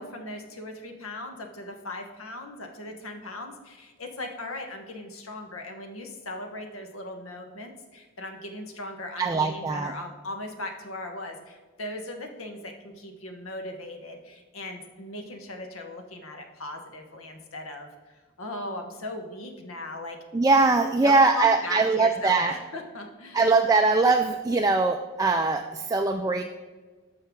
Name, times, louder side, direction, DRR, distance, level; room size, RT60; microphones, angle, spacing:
voice 1, 0.0-20.2 21.0-23.5, left 1 dB, 80° left, 4 dB, 1.2 m, -38 dB
voice 2, 9.2-9.9 20.3-22.5 23.3-26.4, right 3 dB, 15° right, 4 dB, 0.3 m, -22 dB
13.0 x 5.6 x 3.7 m, 1.4 s
head